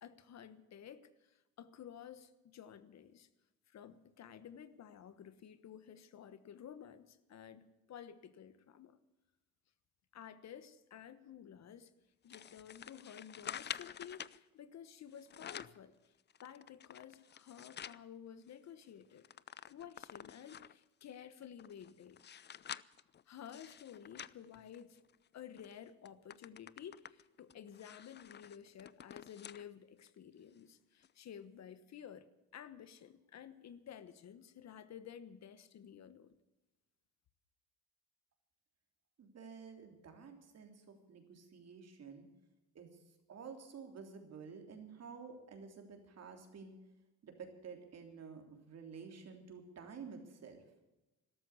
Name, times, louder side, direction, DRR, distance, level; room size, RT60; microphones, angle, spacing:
voice 1, 0.0-3.3 3.7-9.0 10.1-11.9 12.2-15.9 16.4-19.3 19.7-22.2 23.3-25.0 25.3-32.3 32.5-36.3, left 9 dB, 60° left, 13 dB, 1.2 m, -53 dB
sound 1, 12.3-14.4 15.1-15.8 16.3-18.0 18.5-18.6 18.8-20.8 21.4-25.2 25.6-25.7 26.0-29.7 30.1-30.2 31.0-31.1, left 9 dB, 35° left, 0.5 m, -49 dB
voice 2, 39.2-42.3 42.7-43.0 43.3-46.7 47.2-50.6, right 5 dB, 55° right, 4 dB, 3.3 m, -51 dB
13.5 x 12.5 x 8.2 m, 1.0 s
cardioid pair, 90°, 30 cm